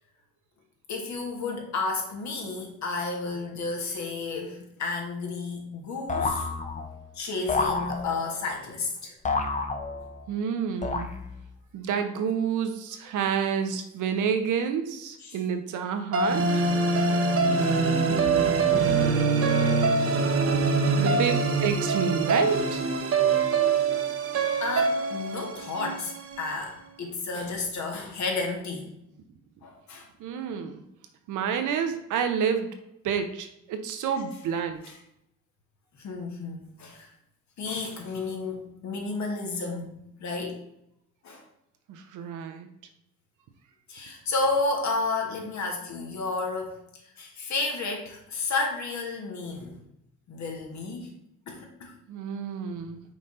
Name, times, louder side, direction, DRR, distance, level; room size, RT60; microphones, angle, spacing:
voice 1, 0.9-6.5 7.1-9.1 9.9-10.0 15.2-15.4 17.7-19.0 21.0-21.3 24.6-28.9 29.6-30.1 34.8-35.0 35.9-37.1 37.6-40.6 41.2-41.4 43.9-49.8 50.3-51.1 51.5-52.0, left 3 dB, 65° left, 1 dB, 1.7 m, -32 dB
sound 1, 6.1-7.0 7.5-8.4 9.3-10.3 10.8-11.5, left 3 dB, 25° left, 0.7 m, -30 dB
voice 2, 10.3-11.1 11.7-16.4 21.0-21.3 21.6-22.8 30.2-30.8 31.3-32.7 33.0-34.8 41.9-42.7 52.1-53.0, right 7 dB, 85° right, 7 dB, 0.9 m, -29 dB
sound 2, 16.1-26.4, right 4 dB, 50° right, 0.9 m, -24 dB
5.8 x 4.1 x 4.3 m, 0.80 s
cardioid pair, 90°, 30 cm